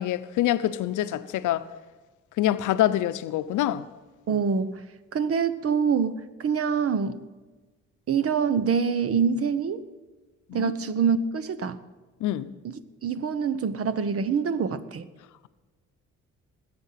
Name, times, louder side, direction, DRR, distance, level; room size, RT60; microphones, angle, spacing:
voice 1, 0.0-1.7 2.4-3.9 10.5-10.7 12.2-12.5, left 13 dB, 85° left, 0.7 m, -25 dB
voice 2, 4.3-4.8 5.1-7.2 8.1-9.8 10.5-11.8 12.6-15.1, right 6 dB, 50° right, 1.0 m, -25 dB
20.0 x 7.9 x 5.8 m
cardioid pair, 90°, 30 cm